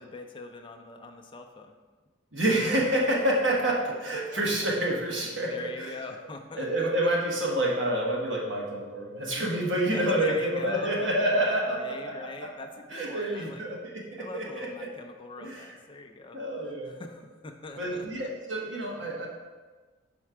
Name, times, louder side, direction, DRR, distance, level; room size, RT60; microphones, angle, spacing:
voice 1, 0.0-1.7 4.0-4.4 5.2-6.9 9.9-13.7 14.2-16.4 16.9-18.3, left 3 dB, 25° left, 3 dB, 0.4 m, -42 dB
voice 2, 2.3-5.9 6.6-12.1 12.4-12.5 12.9-14.7 15.4-15.7 16.3-17.0 17.8-19.3, right 1 dB, 65° right, -2 dB, 1.3 m, -28 dB
5.6 x 4.3 x 4.8 m, 1.3 s
head